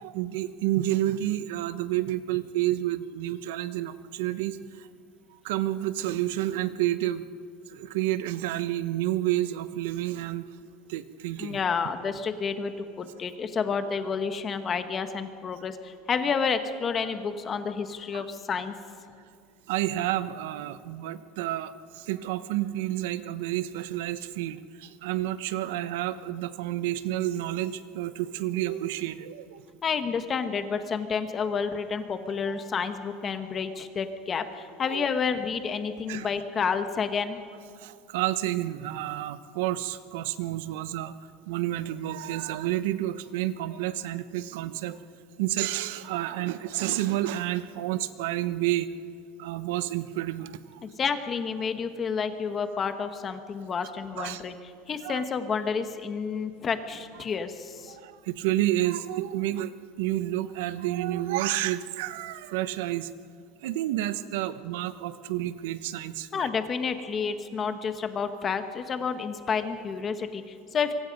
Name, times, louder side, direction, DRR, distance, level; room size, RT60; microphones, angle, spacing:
voice 1, 0.0-4.9 5.3-7.2 7.7-10.4 10.9-11.6 18.1-18.2 19.7-29.6 34.8-35.1 36.1-36.3 37.8-41.2 41.5-45.0 45.4-48.9 49.4-50.8 54.2-54.4 55.0-55.2 57.2-57.3 57.9-59.7 60.0-63.1 63.6-66.5, right 14 dB, 75° right, 13 dB, 0.9 m, -30 dB
voice 2, 11.4-18.7 29.8-37.4 50.8-58.0 66.3-70.9, left 6 dB, 20° left, 8 dB, 1.2 m, -30 dB
25.0 x 24.0 x 5.3 m, 2.2 s
cardioid pair, 175°, 0 cm